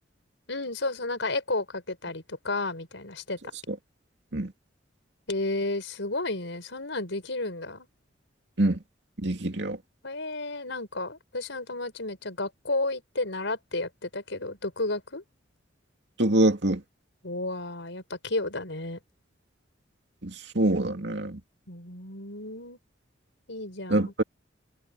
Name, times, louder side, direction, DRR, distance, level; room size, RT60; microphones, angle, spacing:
voice 1, 0.5-3.4 5.3-7.9 10.0-15.2 17.2-19.0 21.7-22.8 23.5-24.1, left 2 dB, 75° left, 4.8 m, -32 dB
voice 2, 9.2-9.8 16.2-16.8 20.2-21.4 23.9-24.2, right 1 dB, 65° right, 2.5 m, -25 dB
head